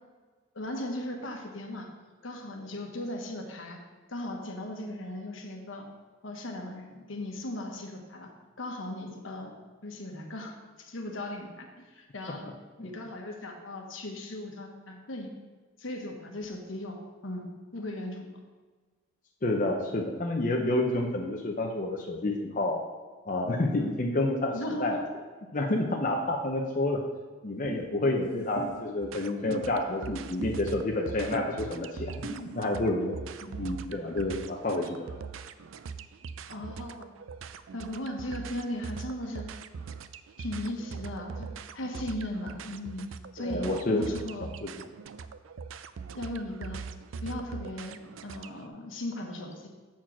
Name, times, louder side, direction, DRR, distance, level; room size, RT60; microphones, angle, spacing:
voice 1, 0.5-1.9 2.2-3.8 4.1-5.9 6.2-8.3 8.6-9.5 9.8-10.5 10.8-12.5 12.8-15.3 15.8-18.3 23.8-24.0 24.5-25.0 28.0-28.3 33.4-33.6 36.5-37.1 37.7-39.5 40.4-43.1 43.3-44.5 46.1-46.8 47.2-49.7, left 1 dB, 75° left, 2 dB, 1.2 m, -37 dB
voice 2, 19.4-22.8 23.3-25.0 25.5-27.0 27.4-33.1 33.6-35.2 43.4-44.1 44.4-44.7, left 2 dB, 40° left, 0 dB, 0.6 m, -29 dB
sound 1, 27.6-27.8 28.6-28.7 29.5-29.6 30.4-30.5 31.3-31.5 32.2-32.4, right 1 dB, 55° right, 1.9 m, -35 dB
sound 2, 29.0-48.6, right 5 dB, 80° right, 0.4 m, -42 dB
7.5 x 4.4 x 5.9 m, 1.4 s
head